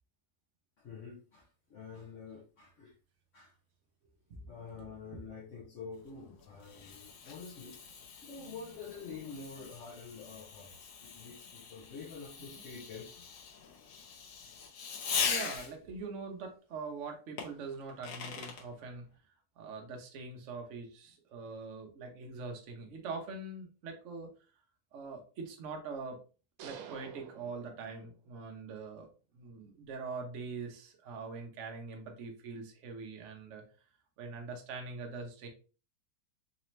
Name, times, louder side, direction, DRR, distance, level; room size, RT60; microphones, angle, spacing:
voice 1, 0.8-2.9 3.3-3.5 4.5-7.8 8.2-13.2, left 5 dB, 55° left, -3 dB, 0.9 m, -47 dB
voice 2, 4.3-4.7 5.1-5.2 8.4-8.6 12.4-12.6 15.2-19.0 19.6-24.3 24.9-26.2 26.6-29.1 29.3-33.6 34.2-35.5, right 4 dB, 55° right, 2 dB, 0.9 m, -43 dB
Fireworks, 6.0-16.0 17.4-18.6, left 6 dB, 70° left, 1.4 m, -41 dB
sound 1, 26.6-28.4, right 7 dB, 80° right, 1.5 m, -49 dB
4.0 x 2.8 x 3.1 m, 0.36 s
omnidirectional pair, 2.2 m